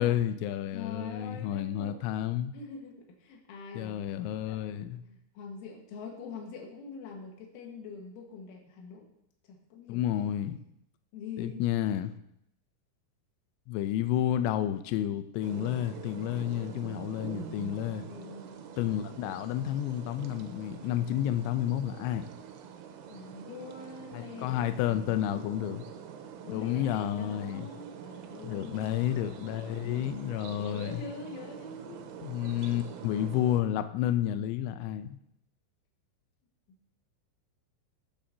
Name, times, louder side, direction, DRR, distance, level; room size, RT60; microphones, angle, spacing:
voice 1, 0.0-2.5 3.7-5.0 9.9-10.6 11.4-12.1 13.7-18.1 18.8-22.3 24.1-25.8 26.5-27.7 28.4-31.0 32.2-35.2, left 11 dB, 90° left, 9 dB, 2.5 m, -30 dB
voice 2, 0.7-2.0 2.5-4.1 4.5-9.1 9.5-10.3 11.1-11.6 18.0-18.6 23.1-25.7 26.4-29.1 29.8-30.1 30.6-32.1, left 5 dB, 75° left, 0 dB, 3.9 m, -44 dB
sound 1, 15.4-33.6, right 8 dB, 90° right, 3.4 m, -45 dB
20.5 x 7.2 x 2.8 m, 0.79 s
omnidirectional pair, 5.9 m